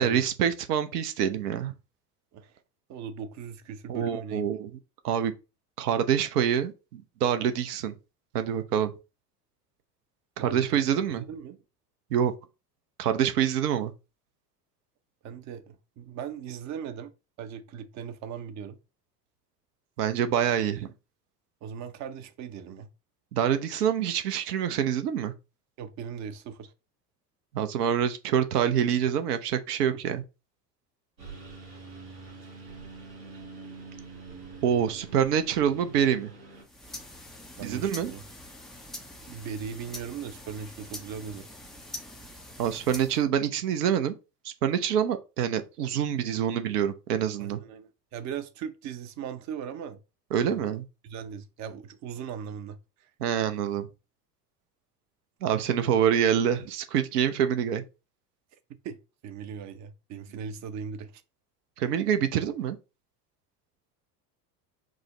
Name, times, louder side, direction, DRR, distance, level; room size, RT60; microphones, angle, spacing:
voice 1, 0.0-1.7 3.9-4.7 5.0-5.3 5.8-7.9 8.3-8.9 10.4-11.2 12.1-12.3 13.0-13.9 20.0-20.9 23.3-25.3 27.5-30.2 34.6-36.3 37.6-38.1 42.6-44.2 44.4-47.6 50.3-50.8 53.2-53.9 55.4-57.8 61.8-62.8, right 9 dB, 65° right, 0.8 m, -26 dB
voice 2, 2.9-4.5 10.4-10.8 11.2-11.6 15.2-17.1 17.4-18.8 21.6-22.9 25.8-26.7 37.6-38.2 39.3-41.5 47.4-50.0 50.4-50.6 51.0-53.1 58.8-59.0 59.2-61.2, right 7 dB, 35° right, 0.7 m, -39 dB
Engine, 31.2-36.6, right 4 dB, 85° right, 2.0 m, -45 dB
sound 1, 36.6-43.3, left 1 dB, ahead, 0.3 m, -44 dB
4.9 x 2.0 x 3.7 m
figure-of-eight pair, 70°, 50 cm